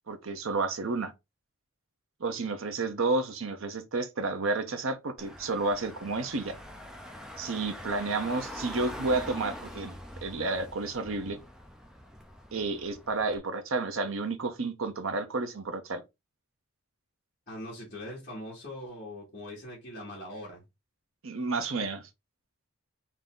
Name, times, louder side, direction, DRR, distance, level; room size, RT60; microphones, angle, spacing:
voice 1, 0.1-1.1 2.2-6.6 7.4-11.4 12.5-16.0 21.2-22.1, right 3 dB, 65° right, 0.8 m, -31 dB
Car / Engine, 5.2-13.4, equal, 5° right, 0.5 m, -44 dB
voice 2, 17.5-20.6, left 1 dB, 35° left, 1.8 m, -41 dB
3.8 x 2.8 x 3.7 m
head